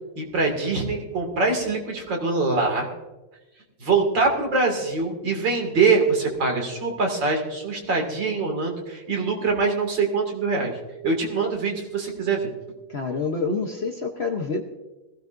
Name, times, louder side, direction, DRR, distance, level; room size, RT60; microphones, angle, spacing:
voice 1, 0.2-2.9 3.8-10.7 11.0-12.5, right 4 dB, 80° right, 2 dB, 3.0 m, -23 dB
voice 2, 12.9-14.6, left 4 dB, 45° left, 4 dB, 0.9 m, -27 dB
20.0 x 16.0 x 2.6 m, 1.1 s
omnidirectional pair, 2.0 m